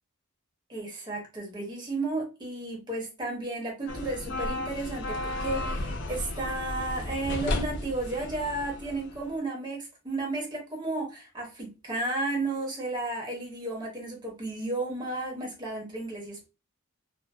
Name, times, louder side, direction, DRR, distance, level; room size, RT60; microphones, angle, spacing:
voice 1, 0.7-16.5, right 2 dB, 20° right, 0.7 m, -33 dB
sound 1, 3.9-9.3, left 1 dB, 55° left, 0.5 m, -34 dB
2.5 x 2.4 x 2.3 m
head